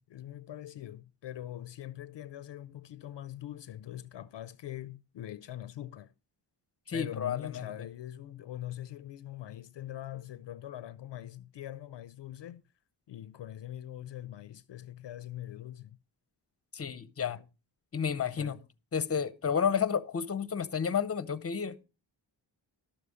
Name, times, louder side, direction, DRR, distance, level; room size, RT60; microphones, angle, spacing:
voice 1, 0.0-6.1 6.9-12.6 13.1-16.0 17.3-17.5 18.3-18.6, left 12 dB, 65° left, 0.5 m, -43 dB
voice 2, 6.9-7.7 16.7-17.4 17.9-18.6 18.9-21.8, left 7 dB, 30° left, 0.7 m, -31 dB
12.0 x 6.8 x 4.9 m
wide cardioid pair, 110°, 45 cm